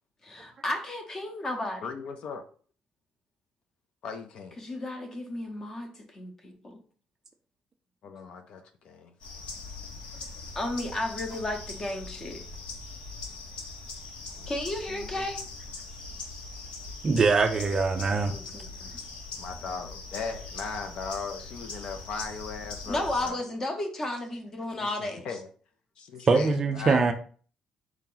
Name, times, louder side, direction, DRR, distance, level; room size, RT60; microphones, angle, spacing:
voice 1, 0.2-1.9 4.6-6.8 10.5-12.4 14.5-15.5 18.3-18.9 22.9-25.4, left 1 dB, 20° left, 0.8 m, -33 dB
voice 2, 1.8-2.4 4.0-4.6 8.0-9.1 14.3-14.5 14.9-15.3 19.4-23.4 24.8-25.5 26.0-27.1, left 5 dB, 50° left, 0.5 m, -38 dB
sound 1, 9.2-23.3, left 3 dB, 70° left, 1.1 m, -41 dB
voice 3, 17.0-18.3 26.3-27.1, right 4 dB, 25° right, 0.4 m, -23 dB
4.6 x 2.8 x 3.8 m
cardioid pair, 175°, 2 cm